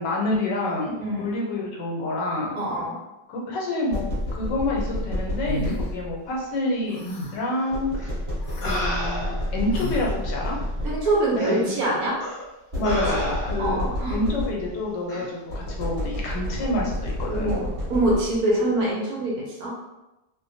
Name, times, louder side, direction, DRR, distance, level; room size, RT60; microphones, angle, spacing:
voice 1, 0.0-2.6 3.3-7.0 7.3-7.9 8.6-10.6 11.4-11.7 12.8-13.8 14.1-17.5, left 2 dB, 85° left, -2 dB, 1.3 m, -28 dB
voice 2, 2.5-3.0 10.8-12.2 12.8-13.3 13.6-14.2 17.3-19.7, right 1 dB, 65° right, -4 dB, 1.1 m, -24 dB
sound 1, 3.9-6.4 7.7-11.3 12.7-14.9 15.5-18.6, left 1 dB, 25° right, 1.0 m, -30 dB
sound 2, 5.5-5.8 6.9-7.5 8.4-8.8 9.7-10.1, equal, 70° left, 0.9 m, -33 dB
sound 3, 8.0-8.1 8.6-9.6 10.4-10.5 11.4-11.6 12.2-12.4 12.8-13.8 15.1-15.3, left 1 dB, 40° left, 0.7 m, -31 dB
2.9 x 2.1 x 2.6 m, 0.98 s
omnidirectional pair, 1.8 m